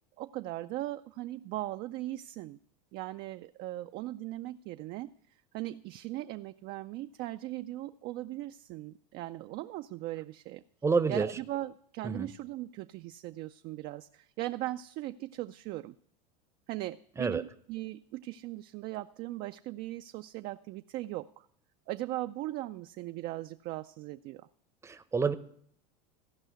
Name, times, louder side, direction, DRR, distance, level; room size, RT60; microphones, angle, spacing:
voice 1, 0.2-2.6 2.9-10.6 11.1-15.9 16.7-21.5 21.9-24.5, right 16 dB, 45° right, 9 dB, 0.4 m, -39 dB
voice 2, 10.8-11.3 12.0-12.3 17.2-17.4 24.8-25.3, right 4 dB, 15° right, 12 dB, 0.7 m, -28 dB
15.5 x 5.5 x 8.0 m, 0.67 s
supercardioid pair, 110°, 21 cm